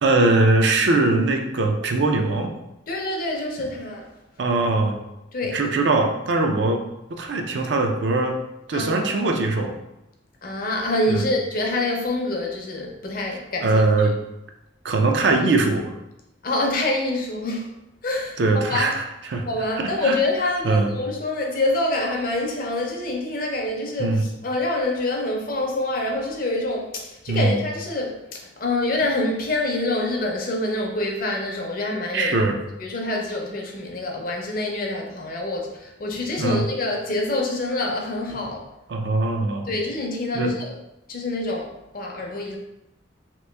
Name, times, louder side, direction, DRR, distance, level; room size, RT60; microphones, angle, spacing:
voice 1, 0.0-2.5 4.4-4.9 5.5-6.8 7.1-8.4 8.7-9.7 11.1-11.3 13.6-14.1 14.8-15.9 18.4-19.5 19.8-20.2 20.6-20.9 24.0-24.3 27.3-27.6 32.1-32.6 36.4-36.7 38.9-39.7 40.3-40.5, right 2 dB, 65° right, 3 dB, 0.4 m, -21 dB
voice 2, 2.9-4.1 5.3-5.6 8.7-9.3 10.4-13.8 16.4-17.7 18.0-18.9 19.4-32.4 32.8-38.7 39.7-40.7 41.1-42.6, left 2 dB, 45° left, 1 dB, 0.5 m, -26 dB
2.9 x 2.5 x 3.3 m, 0.90 s
head